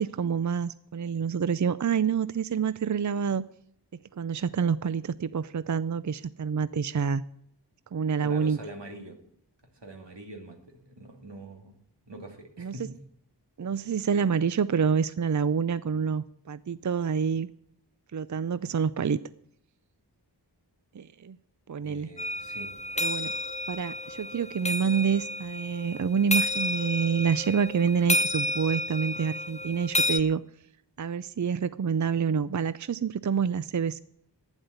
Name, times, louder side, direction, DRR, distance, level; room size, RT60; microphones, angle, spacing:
voice 1, 0.0-3.4 4.1-7.2 7.9-8.6 12.6-12.7 13.6-17.5 18.1-19.2 20.9-21.4 21.7-22.1 23.0-23.3 23.7-30.4 31.0-34.0, right 6 dB, 45° right, 16 dB, 0.5 m, -27 dB
voice 2, 8.2-9.2 9.7-11.7 12.1-13.0 21.8-22.7, right 2 dB, 90° right, 3 dB, 2.5 m, -44 dB
sound 1, 22.2-30.2, left 1 dB, 15° left, 0.6 m, -31 dB
11.5 x 9.9 x 8.0 m, 0.67 s
wide cardioid pair, 55°, 41 cm